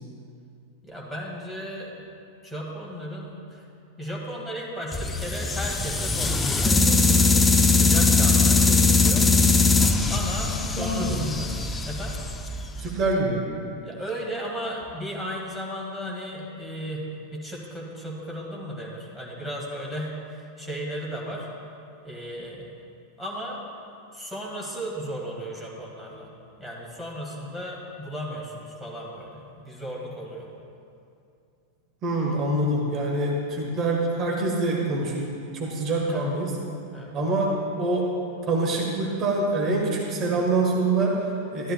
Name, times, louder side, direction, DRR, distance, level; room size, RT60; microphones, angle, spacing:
voice 1, 0.8-2.0 2.4-3.7 4.0-9.3 10.1-11.5 11.9-12.1 13.8-21.5 22.0-22.7 23.2-23.7 24.1-26.3 26.6-30.5 36.1-36.3 36.9-37.1 40.3-40.5, equal, 5° right, -4 dB, 1.8 m, -35 dB
sound 1, 4.9-13.0, left 3 dB, 15° left, 0.5 m, -21 dB
voice 2, 10.6-11.2 12.8-13.4 32.0-36.5 37.1-38.1 38.5-41.7, right 2 dB, 30° right, -1 dB, 1.4 m, -25 dB
12.5 x 11.0 x 2.3 m, 2.5 s
figure-of-eight pair, 90°, 0 cm